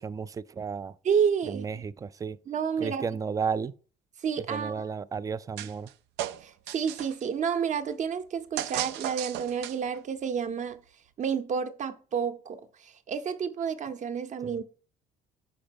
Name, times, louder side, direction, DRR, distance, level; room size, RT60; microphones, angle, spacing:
voice 1, 0.0-0.9 1.5-2.4 2.8-3.7 4.5-5.9 14.4-14.6, right 6 dB, 20° right, 0.3 m, -33 dB
voice 2, 1.0-1.7 2.5-3.1 4.2-4.9 6.4-10.8 11.2-14.6, right 7 dB, 45° right, 0.8 m, -30 dB
sound 1, 5.6-5.9 6.2-7.3 8.6-10.0, right 12 dB, 85° right, 0.5 m, -35 dB
5.9 x 5.1 x 5.1 m
cardioid pair, 110°, 17 cm